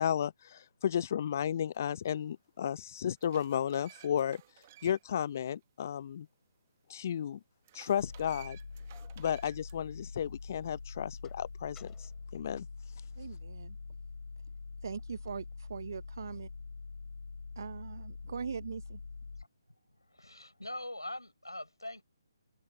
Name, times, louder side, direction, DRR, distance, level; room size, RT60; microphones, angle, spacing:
voice 1, 0.0-4.4 4.8-6.3 6.9-7.4 7.7-8.6 9.2-12.7, left 9 dB, 40° left, 0.6 m, -33 dB
sound 1, 2.3-2.4 2.9-5.3 5.6-5.7 7.6-9.8, right 13 dB, 30° right, 1.3 m, -55 dB
sound 2, 8.0-19.4, left 4 dB, 65° left, 2.2 m, -45 dB
sound 3, 8.7-10.3 10.7-13.3 13.8-15.6, left 10 dB, 10° left, 3.8 m, -67 dB
voice 2, 13.2-13.8 14.8-16.5 17.6-19.0, right 6 dB, 50° right, 0.7 m, -41 dB
voice 3, 20.1-22.0, left 1 dB, 85° left, 5.9 m, -42 dB
figure-of-eight pair, 140°, 2 cm